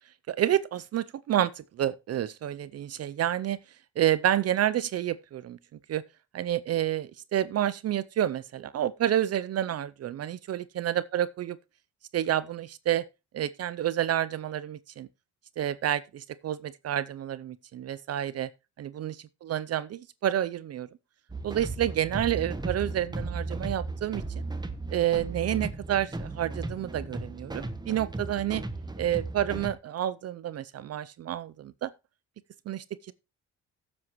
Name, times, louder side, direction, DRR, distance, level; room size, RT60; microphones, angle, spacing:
voice 1, 0.3-3.6 4.0-5.6 5.9-6.0 6.3-11.6 12.1-13.0 13.3-15.1 15.6-18.5 18.8-19.2 19.4-20.9 21.4-24.2 24.9-28.6 29.0-31.9 32.7-33.1, right 11 dB, 55° right, 0.6 m, -29 dB
sound 1, 21.3-29.7, right 2 dB, 15° right, 1.1 m, -36 dB
15.5 x 7.5 x 3.0 m
cardioid pair, 90°, 30 cm